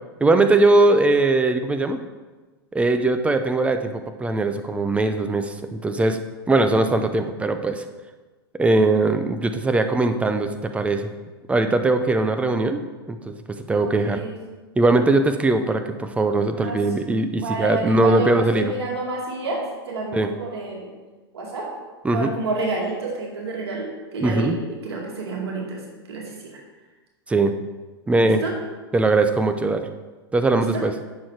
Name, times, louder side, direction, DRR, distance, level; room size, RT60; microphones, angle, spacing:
voice 1, 0.2-2.0 2.7-6.2 6.5-7.9 8.6-11.1 11.5-12.8 13.1-14.2 14.8-18.7 20.1-20.3 22.0-22.3 24.2-24.6 27.3-27.5 28.1-28.4 28.9-29.9 30.3-30.9, right 2 dB, 10° right, 7 dB, 0.6 m, -20 dB
voice 2, 13.8-14.3 16.6-16.8 17.3-19.6 19.9-20.9 21.3-21.7 22.1-25.8 26.1-26.6 28.2-28.5 30.5-30.8, right 3 dB, 75° right, -2 dB, 2.3 m, -29 dB
8.3 x 6.3 x 4.6 m, 1.3 s
hypercardioid pair, 110°, 13 cm